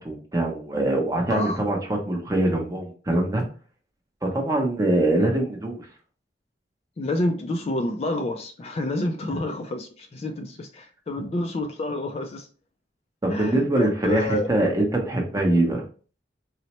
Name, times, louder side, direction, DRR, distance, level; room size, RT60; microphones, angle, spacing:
voice 1, 0.0-3.4 4.2-5.9 9.3-9.4 13.2-15.8, right 1 dB, 20° right, 1 dB, 0.7 m, -23 dB
voice 2, 1.3-1.6 7.0-12.5 13.3-14.5, left 2 dB, 35° left, 5 dB, 0.3 m, -28 dB
4.1 x 2.0 x 2.9 m, 0.39 s
head